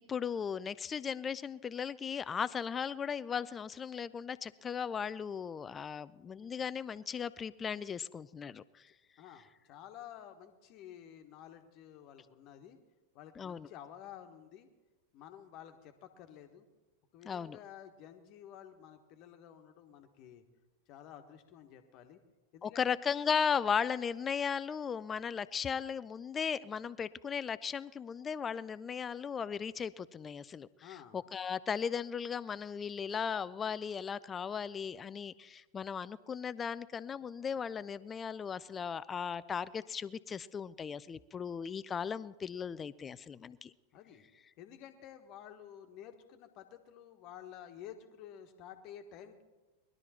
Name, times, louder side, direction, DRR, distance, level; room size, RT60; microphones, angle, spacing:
voice 1, 0.1-8.9 13.4-13.7 17.3-17.6 22.6-43.7, left 7 dB, 20° left, 18 dB, 0.5 m, -37 dB
voice 2, 9.2-12.8 13.1-14.7 15.1-16.6 17.1-20.4 20.9-22.2 22.5-22.8 30.8-31.2 43.9-44.3 44.6-49.4, left 10 dB, 40° left, 7 dB, 1.4 m, -52 dB
20.5 x 12.0 x 4.4 m, 1.1 s
figure-of-eight pair, 90°, 0 cm